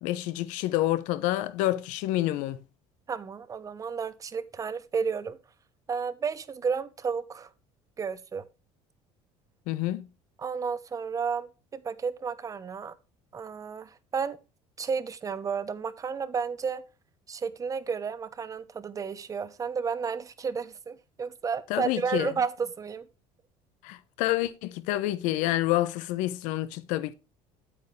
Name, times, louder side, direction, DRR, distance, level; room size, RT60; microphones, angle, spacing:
voice 1, 0.0-2.6 9.7-10.1 21.7-22.3 23.8-27.1, left 15 dB, 75° left, 0.9 m, -28 dB
voice 2, 3.1-5.4 5.9-7.5 8.0-8.4 10.4-12.9 13.3-14.4 14.8-16.8 17.3-23.1, right 6 dB, 25° right, 0.9 m, -32 dB
8.7 x 8.6 x 3.2 m
cardioid pair, 125°, 13 cm